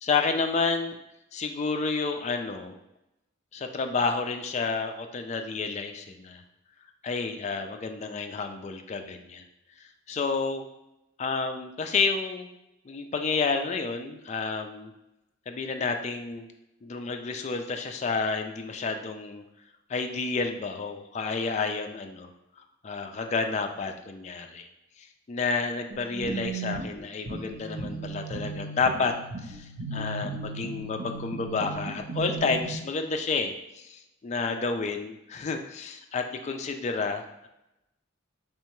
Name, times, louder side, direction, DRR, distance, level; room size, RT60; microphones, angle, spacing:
voice 1, 0.0-0.9 1.3-2.8 3.5-6.4 7.0-9.4 9.8-10.6 11.2-12.5 12.9-14.9 15.5-16.5 16.8-19.4 19.9-22.3 22.8-24.7 25.0-29.2 29.4-37.5, left 4 dB, 35° left, 5 dB, 0.3 m, -30 dB
sound 1, 25.9-32.7, right 3 dB, 75° right, 0.6 m, -36 dB
3.7 x 3.3 x 3.1 m, 0.89 s
head